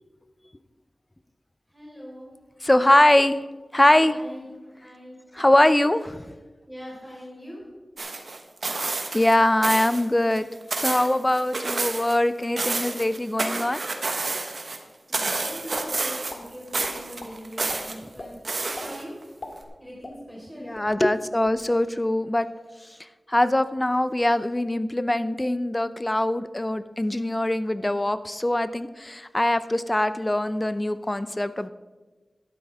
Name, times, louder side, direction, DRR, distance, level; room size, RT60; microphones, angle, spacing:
voice 1, 1.7-2.4 4.0-4.5 4.8-5.2 6.6-7.7 15.1-18.4 18.8-19.2 19.8-20.8, equal, ahead, -5 dB, 4.5 m, -41 dB
voice 2, 2.6-3.4 3.7-4.2 5.3-6.3 9.1-10.5 10.8-13.8 20.6-22.5 23.3-31.7, left 1 dB, 25° left, 13 dB, 0.6 m, -22 dB
sound 1, 8.0-9.3 9.6-10.0 10.4-12.2 12.4-14.8 15.1-16.5 16.7-17.9 18.4-19.2 19.6-19.7, right 3 dB, 70° right, 1.3 m, -29 dB
sound 2, 15.3-15.9 16.3-16.4 16.8-17.3 17.7-17.8 18.2-18.3 18.7-18.9 19.3-20.5 20.7-20.9 21.3-21.6, left 2 dB, 60° left, 1.9 m, -40 dB
12.5 x 11.5 x 3.6 m, 1.3 s
cardioid pair, 40°, 0 cm